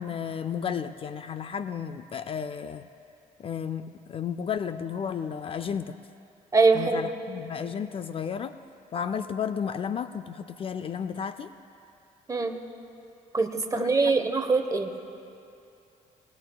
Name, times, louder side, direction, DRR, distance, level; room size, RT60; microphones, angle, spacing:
voice 1, 0.0-2.9 3.4-6.0 6.7-8.5 8.9-11.5 13.7-14.1, left 7 dB, 40° left, 11 dB, 0.4 m, -33 dB
voice 2, 6.5-7.1 12.3-12.6 13.3-14.9, right 4 dB, 25° right, 6 dB, 1.0 m, -23 dB
19.5 x 19.5 x 2.3 m, 2.6 s
cardioid pair, 110°, 15 cm